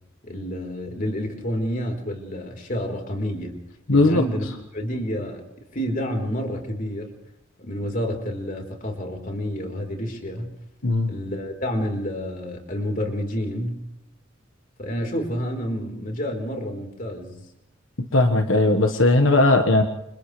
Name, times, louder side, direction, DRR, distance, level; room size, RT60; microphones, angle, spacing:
voice 1, 0.2-3.5 3.9-4.5 4.7-5.4 5.7-7.1 7.6-10.5 11.1-13.8 14.8-17.4, equal, 40° left, 2 dB, 4.2 m, -29 dB
voice 2, 3.9-4.2 10.8-11.1 18.1-19.8, left 2 dB, 80° left, 5 dB, 1.5 m, -18 dB
29.5 x 28.5 x 3.3 m, 0.82 s
head